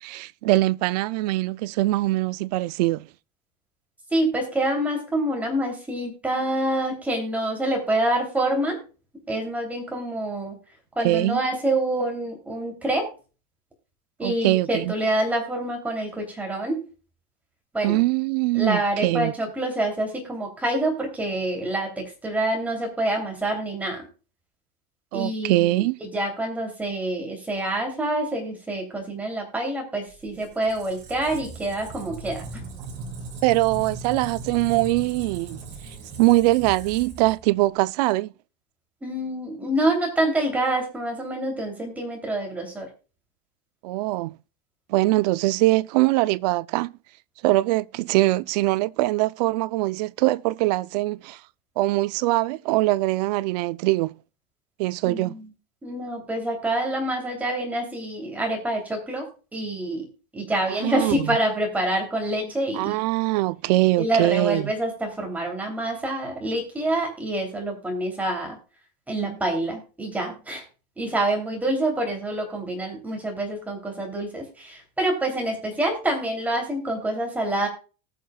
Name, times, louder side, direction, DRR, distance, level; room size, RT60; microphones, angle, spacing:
voice 1, 0.0-3.1 11.0-11.4 14.2-14.9 17.8-19.3 25.1-26.0 33.4-35.6 36.2-38.3 43.8-44.4 44.9-47.0 47.4-51.4 51.8-54.2 54.8-55.4 60.7-61.4 62.7-64.7, right 18 dB, 75° right, 0.5 m, -22 dB
voice 2, 4.1-8.8 9.3-10.6 11.0-13.1 14.2-16.8 17.7-18.0 18.5-24.0 25.1-32.6 39.0-42.9 55.0-55.5 55.8-60.1 60.3-63.0 64.0-68.6 69.1-70.6 71.0-77.7, right 1 dB, 5° right, 3.0 m, -26 dB
Squeak, 30.1-37.8, right 3 dB, 35° right, 3.0 m, -39 dB
19.0 x 6.7 x 2.3 m
cardioid pair, 165°, 21 cm